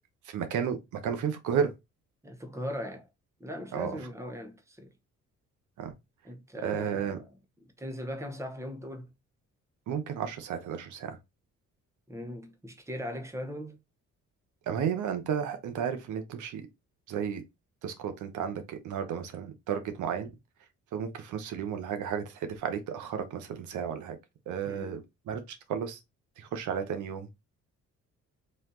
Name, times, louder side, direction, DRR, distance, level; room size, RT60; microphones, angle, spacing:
voice 1, 0.2-1.7 3.7-4.0 5.8-5.9 6.6-7.2 9.9-11.2 14.7-16.7 17.1-17.4 17.8-20.3 20.9-24.2 24.5-26.0 26.4-27.3, right 7 dB, 80° right, 0.9 m, -33 dB
voice 2, 2.2-3.1 3.4-4.9 6.2-7.3 7.8-9.1 12.1-13.8 24.6-25.0, equal, 10° right, 1.0 m, -39 dB
4.3 x 2.7 x 3.7 m
cardioid pair, 90°, 30 cm